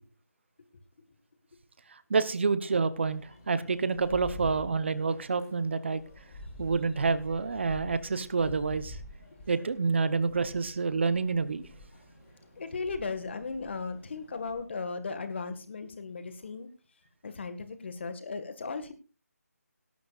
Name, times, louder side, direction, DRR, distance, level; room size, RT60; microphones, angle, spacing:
voice 1, 2.1-6.0 6.6-9.0 9.5-11.7, right 4 dB, 45° right, 14 dB, 0.9 m, -28 dB
sound 1, 2.9-14.6, left 1 dB, 25° left, 7.5 m, -48 dB
voice 2, 12.6-16.7 17.2-18.9, left 4 dB, 45° left, 11 dB, 1.7 m, -36 dB
20.0 x 11.5 x 2.4 m, 0.34 s
figure-of-eight pair, 165°, 9 cm